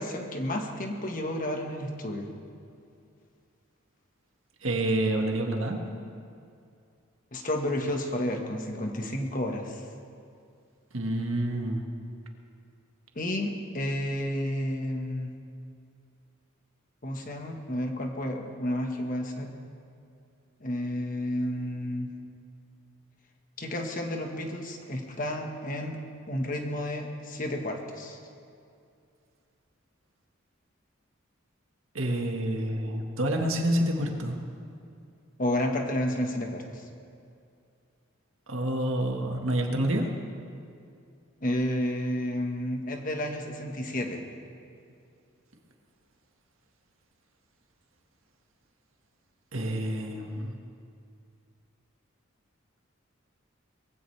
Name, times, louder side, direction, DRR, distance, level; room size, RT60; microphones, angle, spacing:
voice 1, 0.0-2.3 7.3-9.8 13.1-15.3 17.0-19.5 20.6-22.1 23.6-26.0 26.3-28.2 35.4-36.8 41.4-44.2, left 1 dB, 40° left, 3 dB, 1.5 m, -31 dB
voice 2, 4.6-5.8 10.9-11.8 31.9-34.4 38.5-40.1 49.5-50.5, right 1 dB, 80° right, 2 dB, 1.7 m, -28 dB
21.5 x 15.5 x 3.4 m, 2.4 s
head